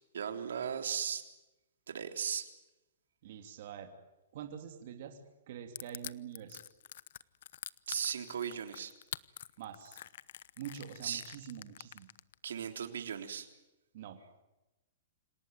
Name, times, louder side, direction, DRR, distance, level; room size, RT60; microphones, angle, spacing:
voice 1, 0.1-1.2 1.9-2.5 7.9-8.9 11.0-11.2 12.4-13.5, right 8 dB, 85° right, 7 dB, 3.5 m, -37 dB
voice 2, 3.2-3.9 4.3-5.2 5.5-6.6 9.6-10.0 10.6-12.1 13.9-14.2, right 9 dB, 55° right, 5 dB, 3.1 m, -45 dB
Crushing, 5.8-12.5, left 11 dB, 65° left, 0.9 m, -46 dB
27.5 x 18.0 x 9.2 m, 0.99 s
hypercardioid pair, 150°, 0 cm